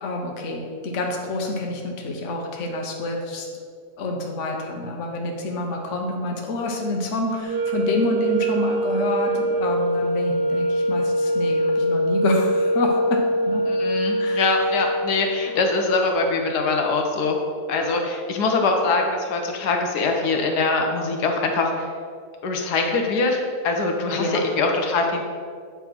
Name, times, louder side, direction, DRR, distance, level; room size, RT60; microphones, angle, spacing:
voice 1, 0.0-3.5 4.0-13.6 14.2-14.5 24.2-24.4, left 2 dB, 55° left, 1 dB, 1.2 m, -27 dB
sound 1, 7.4-15.6, right 1 dB, 50° right, 0.9 m, -23 dB
voice 2, 13.7-17.3 17.7-21.8 22.4-23.4 23.6-24.2 24.6-25.2, left 3 dB, 90° left, 2 dB, 1.5 m, -23 dB
8.3 x 3.5 x 6.0 m, 2.1 s
omnidirectional pair, 1.7 m